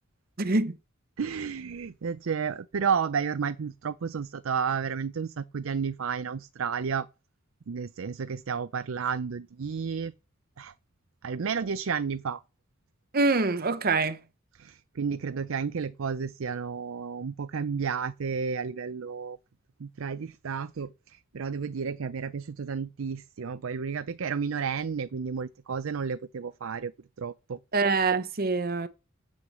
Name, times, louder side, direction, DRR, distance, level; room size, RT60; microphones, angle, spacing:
voice 1, 0.4-0.8 13.1-14.2 27.7-28.9, right 3 dB, 45° right, 0.9 m, -25 dB
voice 2, 1.2-7.1 7.7-10.1 10.6-10.7 11.2-12.4 14.6-19.4 19.8-20.9 21.3-26.9 27.2-27.6, right 6 dB, 75° right, 0.5 m, -31 dB
7.9 x 6.2 x 7.3 m
head